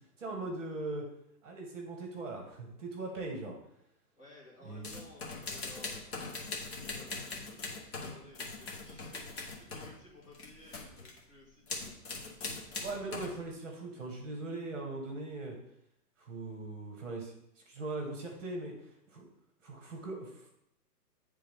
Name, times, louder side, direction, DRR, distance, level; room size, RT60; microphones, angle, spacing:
voice 1, 0.2-1.1 1.4-3.6 4.6-4.9 12.8-15.6 16.2-19.3 19.6-20.5, right 2 dB, 50° right, 1 dB, 1.4 m, -40 dB
voice 2, 4.1-6.2 6.9-12.1, left 2 dB, 20° left, -7 dB, 1.7 m, -57 dB
sound 1, 4.8-10.0 10.2-11.2 11.7-13.4, left 3 dB, 40° left, 1.2 m, -41 dB
9.2 x 3.6 x 3.5 m, 0.78 s
hypercardioid pair, 175°, 49 cm